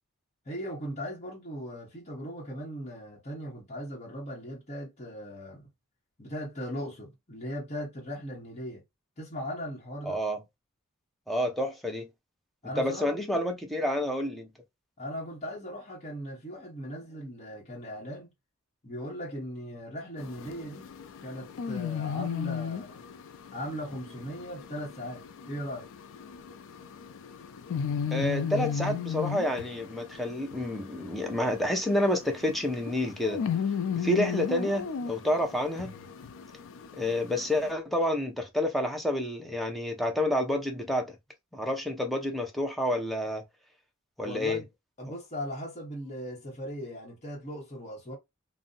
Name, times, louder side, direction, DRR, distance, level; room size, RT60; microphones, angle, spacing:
voice 1, 0.5-5.7 6.2-8.8 9.2-10.2 12.6-13.2 15.0-18.3 18.8-20.9 21.2-23.0 23.5-25.9 44.2-44.7 45.0-48.2, equal, 30° left, 0.9 m, -38 dB
voice 2, 10.1-10.4 11.3-12.1 12.8-14.5 28.1-33.4 33.9-36.0 37.0-41.1 41.5-43.4 44.2-44.6, left 1 dB, ahead, 0.6 m, -29 dB
sound 1, 20.2-37.7, left 7 dB, 60° left, 0.4 m, -36 dB
2.6 x 2.0 x 3.7 m
head